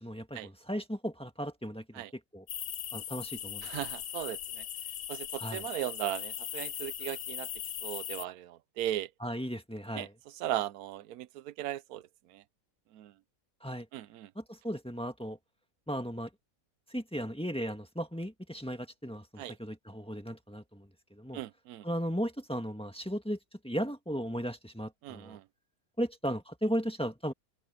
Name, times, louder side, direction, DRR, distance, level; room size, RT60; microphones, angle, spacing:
voice 1, 0.0-2.0 2.3-2.4 2.9-3.7 5.4-5.7 9.2-10.1 13.6-13.9 14.4-15.4 15.9-16.3 16.9-21.4 21.8-23.4 23.6-25.4 26.0-27.3, equal, 5° left, 1.7 m, -36 dB
sound 1, 2.5-8.2, left 10 dB, 85° left, 1.3 m, -39 dB
voice 2, 3.6-4.6 5.1-7.5 7.8-9.1 9.9-10.1 10.3-12.4 12.9-13.1 13.9-14.3 19.4-19.6 21.3-21.8 25.0-25.4, right 13 dB, 90° right, 1.1 m, -37 dB
open air
omnidirectional pair, 1.5 m